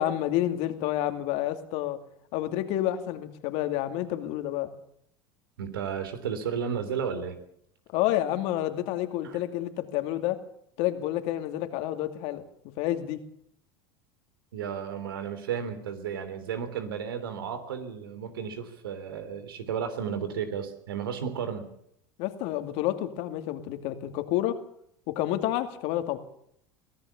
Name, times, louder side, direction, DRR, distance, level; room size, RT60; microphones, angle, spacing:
voice 1, 0.0-2.0 2.3-4.7 7.9-10.4 10.8-12.4 12.8-13.2 22.2-24.6 25.1-26.2, left 13 dB, 65° left, 8 dB, 2.5 m, -29 dB
voice 2, 5.6-7.4 9.2-9.4 14.5-21.6, right 7 dB, 85° right, 10 dB, 3.2 m, -33 dB
23.5 x 16.0 x 7.2 m, 0.71 s
hypercardioid pair, 95°, 12 cm